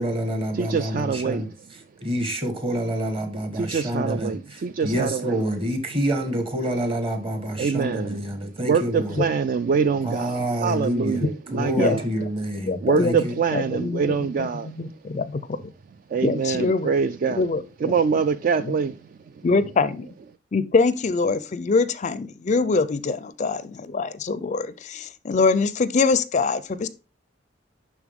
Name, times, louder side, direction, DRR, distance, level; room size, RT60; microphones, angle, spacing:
voice 1, 0.0-1.5 2.0-9.2 10.0-11.2 11.5-13.3, equal, 30° right, 1.3 m, -27 dB
voice 2, 0.5-1.4 3.5-5.4 7.6-8.2 8.6-12.0 12.8-14.7 16.1-17.4 17.8-18.9, right 6 dB, 45° right, 0.3 m, -24 dB
voice 3, 11.2-12.0 12.6-15.6 16.2-16.9 17.2-17.9 18.6-18.7 19.4-20.1 20.5-26.9, left 4 dB, 40° left, 0.4 m, -24 dB
11.0 x 3.8 x 3.5 m
head